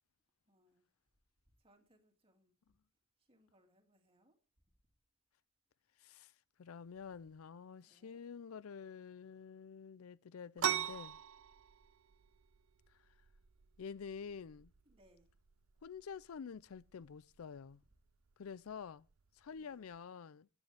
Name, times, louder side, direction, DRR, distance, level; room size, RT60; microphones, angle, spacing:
voice 1, 0.5-0.9 1.6-2.5 3.2-4.4 7.8-8.2 14.8-15.3 19.5-19.9, equal, 25° right, 2.4 m, -71 dB
voice 2, 6.0-6.3 6.6-11.2 13.8-14.7 15.8-17.8 18.4-19.1 19.4-20.5, left 6 dB, 90° left, 0.5 m, -48 dB
sound 1, 10.6-20.0, right 9 dB, 75° right, 0.6 m, -44 dB
16.5 x 9.0 x 3.4 m
head